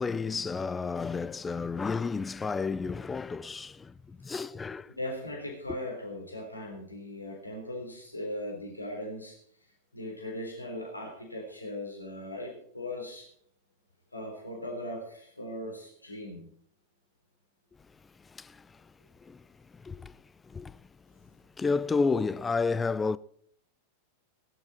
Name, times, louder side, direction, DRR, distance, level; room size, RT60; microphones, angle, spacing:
voice 1, 0.0-4.9 18.2-18.8 19.2-19.4 19.7-20.8 21.2-21.3 21.6-23.2, left 4 dB, 15° left, 0.5 m, -31 dB
voice 2, 4.9-9.4 9.9-13.3 14.1-16.5, left 1 dB, 85° left, 3.7 m, -39 dB
19.5 x 11.5 x 4.3 m
figure-of-eight pair, 90°, 0 cm